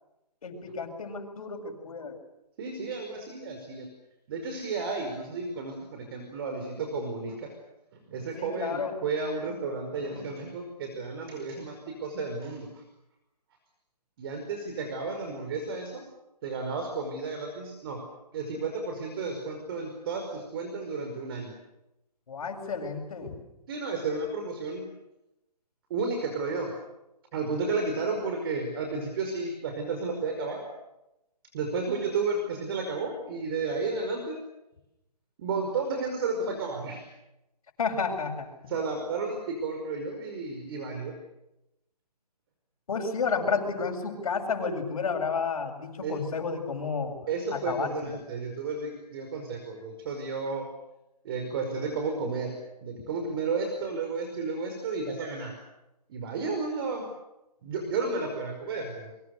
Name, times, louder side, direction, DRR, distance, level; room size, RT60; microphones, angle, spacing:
voice 1, 0.4-2.2 8.4-9.0 22.3-23.4 37.8-38.7 42.9-47.2 47.5-48.2, left 5 dB, 55° left, 3 dB, 7.4 m, -31 dB
voice 2, 2.6-3.9 4.3-7.5 7.9-12.8 14.2-16.0 16.4-18.0 18.3-21.5 23.7-24.9 25.9-26.7 27.3-30.6 31.5-34.4 35.4-37.0 38.7-41.1 46.0-46.2 47.3-50.7 51.2-52.6 52.8-55.5 56.1-57.1 57.6-59.1, right 4 dB, 35° right, 4 dB, 5.1 m, -32 dB
29.5 x 24.0 x 6.7 m, 0.89 s
hypercardioid pair, 155°, 21 cm